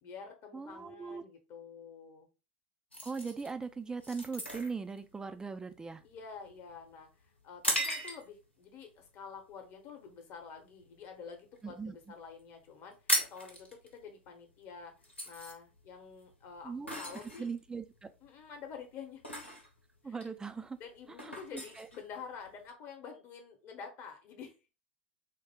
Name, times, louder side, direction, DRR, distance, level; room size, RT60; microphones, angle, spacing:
voice 1, 0.0-2.3 6.0-7.1 7.4-14.9 15.2-17.5 18.2-19.2 20.0-20.2 20.8-24.5, left 6 dB, 40° left, 0.9 m, -48 dB
voice 2, 0.5-1.2 3.0-6.0 11.6-12.0 16.6-17.0 17.4-18.1 20.0-20.8 21.2-21.9, right 5 dB, 10° right, 0.3 m, -40 dB
sound 1, 2.9-8.5 9.0-9.3 9.8-10.1 10.5-11.6 11.9-12.0 12.2-12.4 12.7-22.7, equal, 90° left, 0.9 m, -38 dB
3.6 x 2.1 x 3.4 m
figure-of-eight pair, 85°, 6 cm